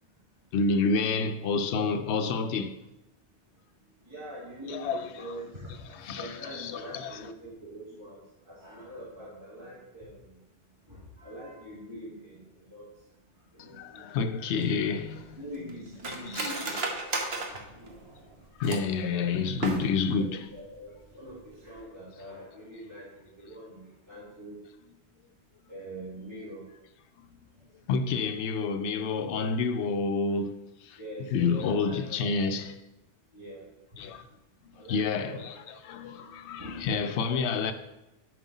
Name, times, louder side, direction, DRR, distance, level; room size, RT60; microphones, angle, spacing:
voice 1, 0.0-0.5 4.0-10.4 10.7-14.3 15.3-16.9 17.4-18.0 18.7-19.2 20.2-24.6 25.7-26.6 27.8-28.4 31.0-32.0 33.3-34.0 34.7-35.4 36.6-36.9 37.2-37.4, equal, 25° right, 2.3 m, -44 dB
voice 2, 0.5-2.8 4.7-5.5 5.9-7.3 13.6-16.8 18.6-20.6 24.8-24.9 27.2-27.5 27.9-30.6 30.8-32.8 34.0-34.3 34.7-37.7, left 4 dB, 75° left, 0.9 m, -29 dB
Cutlery silverware, 14.6-19.0 19.5-20.2 20.5-20.6 20.9-21.3 21.6-21.8, right 3 dB, 65° right, 1.1 m, -35 dB
7.4 x 4.9 x 4.1 m
omnidirectional pair, 1.2 m